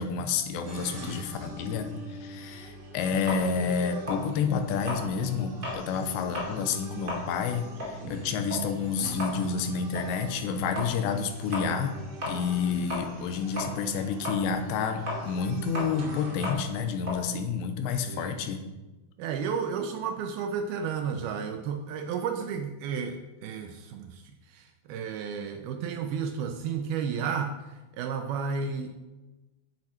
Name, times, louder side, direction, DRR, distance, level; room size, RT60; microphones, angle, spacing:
voice 1, 0.0-11.9 12.3-18.6, left 6 dB, 85° left, 7 dB, 3.1 m, -29 dB
sound 1, 0.6-16.5, equal, 55° right, 3.5 m, -43 dB
sound 2, 3.3-5.9 6.2-6.6 6.9-13.3 13.6-18.3, left 2 dB, 20° right, 3.0 m, -36 dB
voice 2, 19.2-29.0, right 6 dB, 80° right, 6 dB, 2.3 m, -32 dB
10.5 x 8.7 x 4.3 m, 1.1 s
omnidirectional pair, 4.9 m